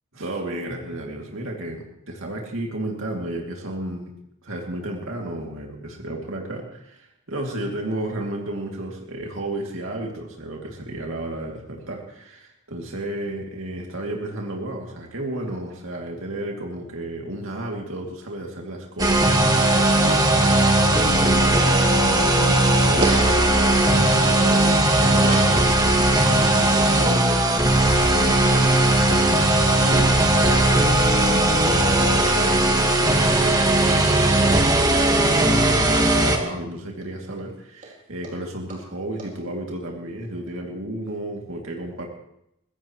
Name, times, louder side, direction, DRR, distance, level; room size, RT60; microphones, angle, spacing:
voice 1, 0.1-4.1 4.4-42.1, right 1 dB, 65° right, 0 dB, 2.6 m, -32 dB
sound 1, 19.0-36.4, right 1 dB, 15° right, 1.6 m, -18 dB
sound 2, 23.0-25.6 29.1-30.5 31.0-35.1 37.0-37.1 37.4-37.5 37.8-37.9 38.2-38.3 38.7-38.8 39.2-39.3, right 2 dB, 35° right, 4.1 m, -34 dB
sound 3, 23.2-31.2, left 1 dB, 35° left, 7.5 m, -35 dB
23.5 x 16.0 x 3.1 m, 0.78 s
head